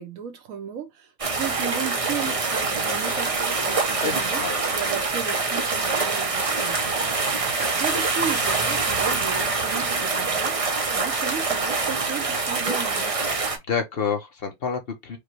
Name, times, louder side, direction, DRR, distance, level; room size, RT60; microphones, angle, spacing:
voice 1, 0.0-4.4 4.7-13.2, right 7 dB, 70° right, 1.2 m, -35 dB
sound 1, 1.2-13.6, right 4 dB, 30° right, 0.6 m, -25 dB
voice 2, 4.0-4.8 13.7-15.2, left 6 dB, 45° left, 1.0 m, -29 dB
5.1 x 2.3 x 3.0 m
omnidirectional pair, 1.5 m